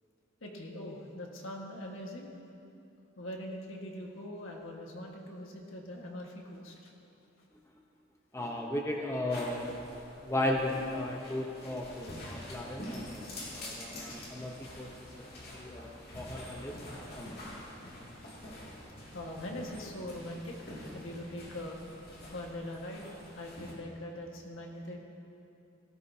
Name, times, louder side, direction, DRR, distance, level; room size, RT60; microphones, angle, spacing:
voice 1, 0.4-2.3 3.2-6.9 15.5-15.6 19.1-21.8 22.3-23.1 23.3-25.0, left 1 dB, 80° left, 0 dB, 1.6 m, -42 dB
voice 2, 8.3-9.8 10.2-16.8 17.2-17.6, left 1 dB, 15° left, 0 dB, 0.8 m, -36 dB
sound 1, 9.3-23.7, left 1 dB, 55° left, 2.3 m, -46 dB
17.5 x 13.5 x 2.8 m, 2.8 s
head